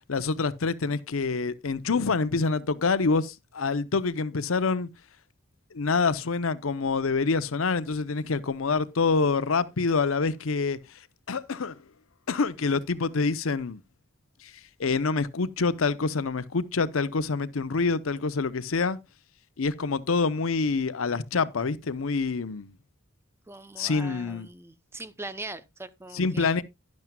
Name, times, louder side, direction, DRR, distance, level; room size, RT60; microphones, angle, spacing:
voice 1, 0.1-4.9 5.7-10.8 11.3-11.8 12.3-13.8 14.4-14.5 14.8-19.0 19.6-22.7 23.8-24.5 26.1-26.6, left 4 dB, 80° left, 0.7 m, -26 dB
voice 2, 23.5-26.6, right 2 dB, 10° right, 0.6 m, -41 dB
12.0 x 10.5 x 2.3 m
head